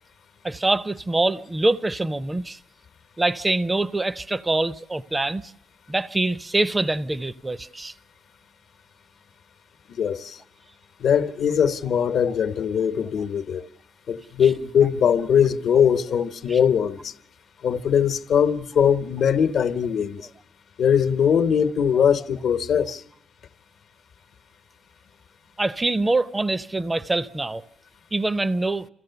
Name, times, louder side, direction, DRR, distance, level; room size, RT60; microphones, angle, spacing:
voice 1, 0.4-2.6 3.2-5.4 5.9-7.9 16.5-16.6 25.6-27.6 28.1-28.9, right 2 dB, 20° right, 0.7 m, -24 dB
voice 2, 9.9-10.4 11.0-13.6 14.1-17.1 17.6-20.2 20.8-23.0, left 8 dB, 65° left, 1.0 m, -21 dB
27.0 x 15.5 x 6.9 m
cardioid pair, 90°, 0 cm